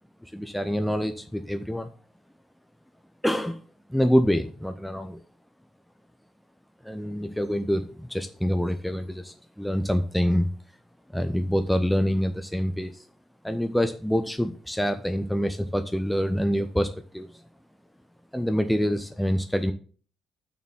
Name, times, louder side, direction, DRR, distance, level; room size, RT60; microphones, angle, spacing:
voice 1, 0.2-1.9 3.2-3.6 3.9-5.2 6.8-10.5 11.1-13.0 13.4-17.3 18.3-19.7, equal, 5° left, 7 dB, 1.0 m, -26 dB
7.1 x 6.5 x 7.3 m, 0.40 s
hypercardioid pair, 50°, 0 cm